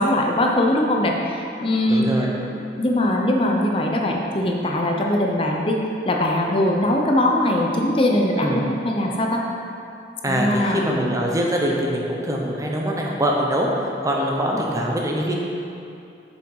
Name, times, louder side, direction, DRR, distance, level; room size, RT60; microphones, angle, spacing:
voice 1, 0.0-2.1 2.5-5.8 6.0-9.4 10.3-10.8, left 1 dB, 30° left, 0 dB, 0.6 m, -21 dB
voice 2, 1.9-2.3 8.4-8.6 10.2-13.7 14.0-15.4, equal, 20° right, -1 dB, 0.8 m, -23 dB
7.5 x 6.0 x 4.7 m, 2.7 s
head